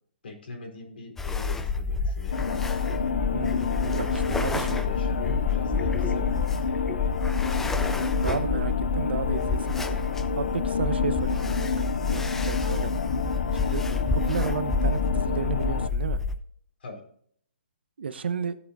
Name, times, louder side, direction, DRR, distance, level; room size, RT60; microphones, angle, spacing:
voice 1, 0.2-2.8 3.9-7.2 16.8-17.0, left 3 dB, 65° left, 2 dB, 4.1 m, -42 dB
sound 1, 1.2-16.3, left 4 dB, 5° left, 0.4 m, -28 dB
sound 2, 2.3-15.9, left 5 dB, 80° left, 0.5 m, -30 dB
voice 2, 3.3-3.7 4.0-4.1 4.4-4.9 8.2-9.9 10.4-12.9 13.6-13.8 14.1-16.2 18.0-18.6, right 6 dB, 70° right, 13 dB, 0.9 m, -32 dB
15.5 x 7.1 x 2.7 m, 0.63 s
hypercardioid pair, 155°, 6 cm